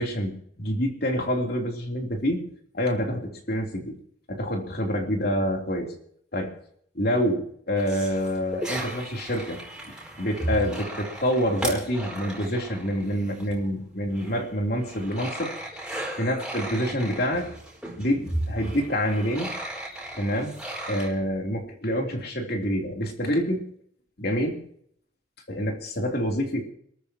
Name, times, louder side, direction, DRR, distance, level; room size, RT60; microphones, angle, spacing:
voice 1, 0.0-2.4 2.7-4.0 4.3-5.9 6.3-6.5 6.9-9.6 10.2-15.5 16.2-17.5 18.0-19.5 20.1-20.5 20.9-23.6 24.2-24.6 25.5-26.7, equal, 55° left, 1 dB, 3.3 m, -27 dB
sound 1, 7.8-13.7 14.1-21.1, right 1 dB, 5° right, 4.7 m, -35 dB
28.0 x 13.5 x 3.0 m, 0.65 s
head